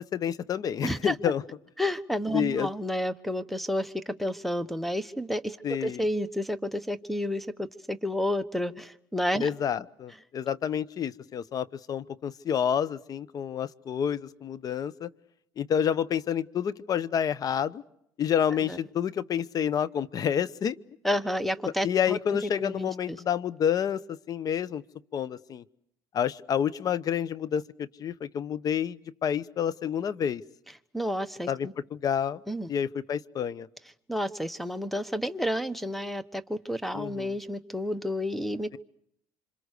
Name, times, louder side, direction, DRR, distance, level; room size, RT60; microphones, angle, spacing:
voice 1, 0.0-1.4 2.3-2.7 5.6-6.0 9.4-15.1 15.6-17.8 18.2-20.8 21.8-24.0 24.3-24.8 25.1-25.6 26.1-30.4 31.5-32.4 32.7-33.7 36.9-37.3, left 8 dB, 45° left, 17 dB, 0.9 m, -29 dB
voice 2, 0.8-1.1 1.8-9.5 18.6-18.8 21.0-23.2 30.9-31.7 32.5-32.7 34.1-38.8, equal, ahead, 14 dB, 1.3 m, -31 dB
26.5 x 26.5 x 6.7 m, 0.73 s
supercardioid pair, 90°, 9 cm